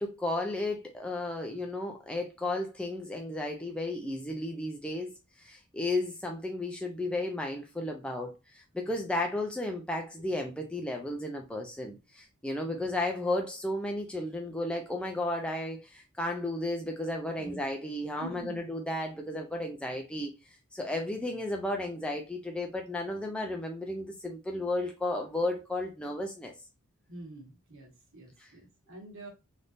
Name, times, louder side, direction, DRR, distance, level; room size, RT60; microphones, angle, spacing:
voice 1, 0.0-20.3 20.7-26.5 28.4-28.5, left 1 dB, 5° left, 0.3 m, -33 dB
voice 2, 12.6-13.0 17.4-17.6 18.2-18.6 27.1-29.3, right 1 dB, 65° right, 1.3 m, -46 dB
3.4 x 2.6 x 2.5 m
head